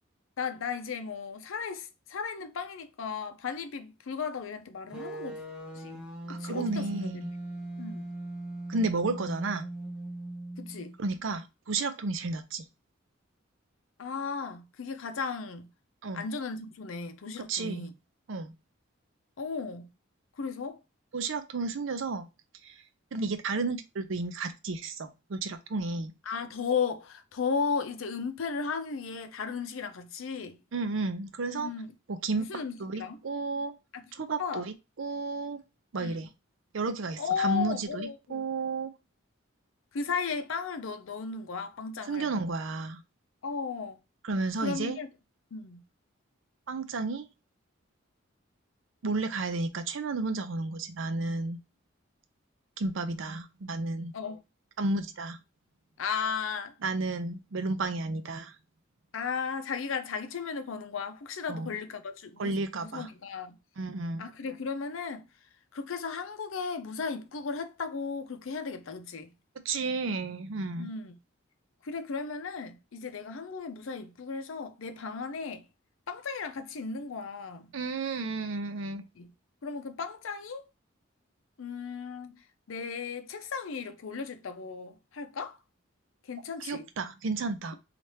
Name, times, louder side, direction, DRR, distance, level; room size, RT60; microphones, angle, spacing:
voice 1, 0.4-5.4 5.7-7.3 7.8-8.1 10.6-10.9 14.0-15.7 16.1-17.9 19.4-19.9 20.4-20.8 26.3-30.6 31.6-31.9 32.3-33.2 33.9-34.1 34.4-34.7 36.0-36.2 37.2-38.5 39.9-42.3 43.4-44.0 44.6-45.1 45.5-45.8 54.1-54.4 56.0-56.8 59.1-63.6 64.2-65.3 65.7-69.3 70.8-71.2 71.8-75.7 76.1-77.7 79.2-79.3 79.6-80.7 81.6-85.6 86.3-86.9, left 5 dB, 80° left, 0.5 m, -35 dB
sound 1, 4.9-11.0, right 1 dB, 5° right, 0.7 m, -39 dB
voice 2, 6.3-7.3 8.7-9.7 11.0-12.7 16.0-16.3 17.5-17.9 18.3-18.5 21.1-22.3 22.6-22.8 23.1-26.1 30.7-31.7 32.1-33.7 34.1-35.6 35.9-36.3 36.7-38.9 42.1-43.0 44.2-45.0 46.7-47.3 49.0-51.6 52.8-54.1 54.8-55.4 56.8-58.6 61.5-61.7 62.4-63.1 63.8-64.3 69.6-70.9 77.7-79.0 86.6-87.8, right 3 dB, 75° right, 0.5 m, -32 dB
4.2 x 2.4 x 3.2 m
head